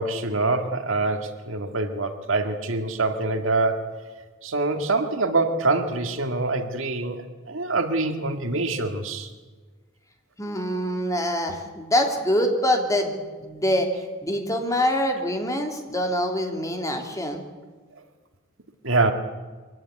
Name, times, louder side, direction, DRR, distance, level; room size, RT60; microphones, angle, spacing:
voice 1, 0.0-3.9 4.4-7.2 7.5-9.3 18.8-19.1, right 3 dB, 70° right, 6 dB, 2.0 m, -25 dB
voice 2, 10.4-13.9 14.2-17.4, equal, 15° left, 3 dB, 3.0 m, -25 dB
23.5 x 16.5 x 9.7 m, 1.4 s
head